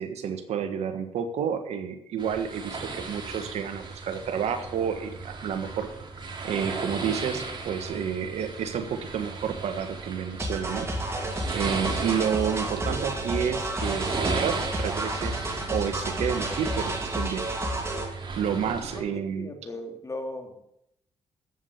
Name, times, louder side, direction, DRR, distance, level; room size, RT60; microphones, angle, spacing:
voice 1, 0.0-5.9 6.2-15.4 15.7-17.4 18.4-19.5, right 7 dB, 75° right, 7 dB, 1.5 m, -30 dB
sound 1, 2.2-19.0, right 4 dB, 45° right, 3.0 m, -36 dB
sound 2, 10.4-18.1, right 1 dB, 25° right, 2.5 m, -31 dB
voice 2, 19.1-20.8, left 1 dB, 30° left, 4 dB, 2.3 m, -38 dB
8.3 x 7.4 x 8.3 m, 0.79 s
supercardioid pair, 60°, 11 cm